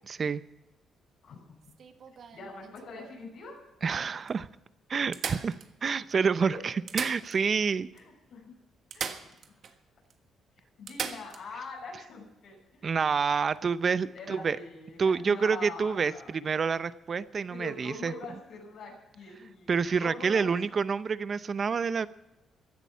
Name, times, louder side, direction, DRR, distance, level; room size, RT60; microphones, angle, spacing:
voice 1, 0.1-0.4 3.8-4.5 4.9-7.9 12.8-14.6 15.0-18.1 19.7-22.1, right 5 dB, 45° right, 15 dB, 0.7 m, -28 dB
sound 1, 1.6-3.2 3.9-4.0 4.3-4.4 5.1-6.1 6.7-7.7 8.0-8.1 8.9-9.8 10.1-10.2 10.9-11.4 13.4-13.6, right 6 dB, 60° right, 1.4 m, -38 dB
voice 2, 2.3-3.6 6.4-6.6 7.9-8.5 8.9-9.8 10.8-12.9 14.1-16.3 17.5-20.5, left 3 dB, 75° left, -2 dB, 5.8 m, -44 dB
15.5 x 11.0 x 5.7 m, 0.95 s
cardioid pair, 90°, 0 cm